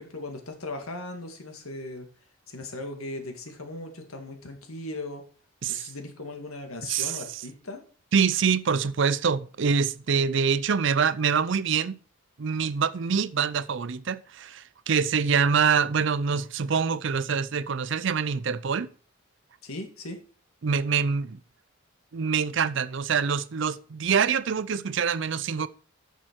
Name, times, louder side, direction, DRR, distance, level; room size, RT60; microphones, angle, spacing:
voice 1, 0.0-2.1 2.5-5.2 5.7-7.8 19.6-20.2, left 2 dB, 85° left, 2.0 m, -38 dB
voice 2, 6.9-7.2 8.1-11.9 12.4-18.9 20.6-21.4 22.1-25.7, right 6 dB, 60° right, 0.5 m, -25 dB
10.0 x 6.4 x 4.6 m
head